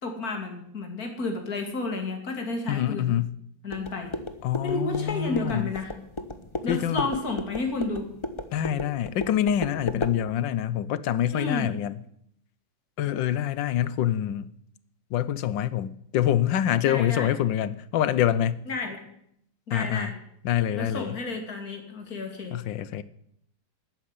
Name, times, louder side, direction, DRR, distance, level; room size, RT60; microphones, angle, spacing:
voice 1, 0.0-3.1 3.6-4.1 4.6-5.9 6.6-8.1 11.3-11.7 16.8-17.3 18.7-19.0 19.7-20.1 20.7-22.6, left 3 dB, 55° left, 3.2 m, -31 dB
voice 2, 2.7-3.3 4.4-5.7 6.7-7.1 8.5-12.0 13.0-14.5 15.1-18.6 19.7-20.1 20.4-21.2 22.5-23.0, left 11 dB, 90° left, 1.5 m, -26 dB
Pounding Tire fast light, 3.7-10.2, left 2 dB, 20° left, 0.9 m, -35 dB
13.5 x 9.3 x 9.7 m
omnidirectional pair, 1.9 m